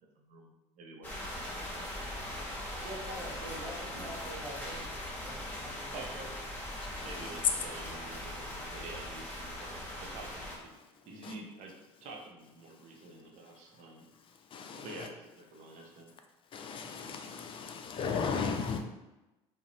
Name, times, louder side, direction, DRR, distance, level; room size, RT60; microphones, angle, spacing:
voice 1, 0.2-1.9 3.9-4.3 5.5-6.3 7.0-11.7 12.0-14.1 14.8-16.1, right 3 dB, 60° right, 1 dB, 0.6 m, -49 dB
sound 1, 1.0-10.6, left 1 dB, 10° left, 0.9 m, -40 dB
voice 2, 2.8-6.3 14.7-14.9, equal, 40° right, -7 dB, 1.2 m, -45 dB
voice 3, 6.7-7.3 9.5-9.6 10.7-10.9 11.2-11.4 12.7-13.1 13.5-15.1 15.8-15.9 16.5-18.8, left 5 dB, 40° left, 5 dB, 0.4 m, -38 dB
2.4 x 2.0 x 2.9 m, 1.0 s
supercardioid pair, 85°, 14 cm